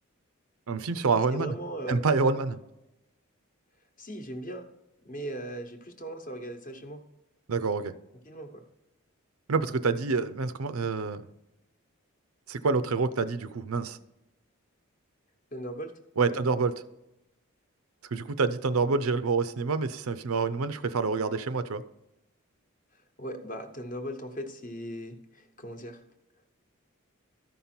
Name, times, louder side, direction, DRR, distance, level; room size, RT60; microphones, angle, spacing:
voice 1, 0.7-1.6 1.9-2.6 7.5-7.9 9.5-11.2 12.5-14.0 16.2-16.8 18.0-21.8, right 4 dB, 85° right, 13 dB, 0.6 m, -27 dB
voice 2, 1.3-2.0 4.0-4.7 5.0-7.0 8.3-8.6 15.5-15.9 16.2-16.4 23.2-26.0, right 1 dB, 40° left, 6 dB, 0.9 m, -38 dB
13.0 x 5.4 x 4.4 m, 0.96 s
head